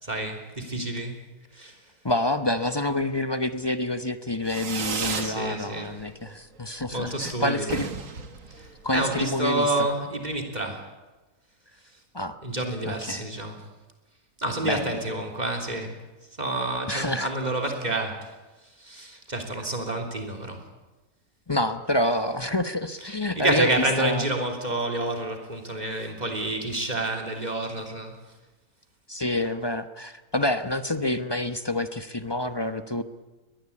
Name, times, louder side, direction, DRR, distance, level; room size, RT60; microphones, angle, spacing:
voice 1, 0.0-1.2 1.5-1.8 5.1-6.0 6.9-7.9 8.5-10.9 12.4-13.6 14.4-16.0 16.4-18.3 18.8-20.7 23.0-28.2, right 2 dB, 25° right, 3 dB, 3.5 m, -29 dB
voice 2, 2.0-7.9 8.8-9.7 12.1-12.4 12.8-13.2 14.6-14.9 16.9-17.3 21.5-24.2 29.1-33.0, left 1 dB, 20° left, 10 dB, 0.8 m, -27 dB
Fireworks, 4.4-5.4 5.7-6.3 6.6-6.7 6.9-7.0 7.3-7.4 7.6-9.3, right 5 dB, 55° right, 1.9 m, -33 dB
22.0 x 19.5 x 8.5 m, 1.1 s
omnidirectional pair, 1.6 m